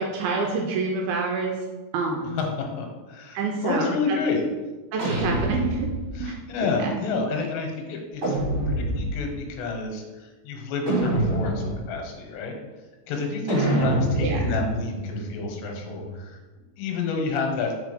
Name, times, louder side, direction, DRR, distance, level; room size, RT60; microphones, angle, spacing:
voice 1, 0.0-1.6 1.9-2.4 3.3-4.2 4.9-5.9 6.2-6.3 6.8-7.0 13.7-14.6, right 4 dB, 85° right, 0 dB, 2.3 m, -27 dB
voice 2, 2.4-4.4 6.2-8.4 8.7-12.6 13.1-16.4 16.8-17.7, left 4 dB, 85° left, 2 dB, 3.1 m, -29 dB
sound 1, 5.0-6.3 8.2-9.3 10.9-11.9 13.5-16.2, right 1 dB, 55° right, 1.8 m, -26 dB
6.0 x 4.2 x 5.0 m, 1.2 s
omnidirectional pair, 4.9 m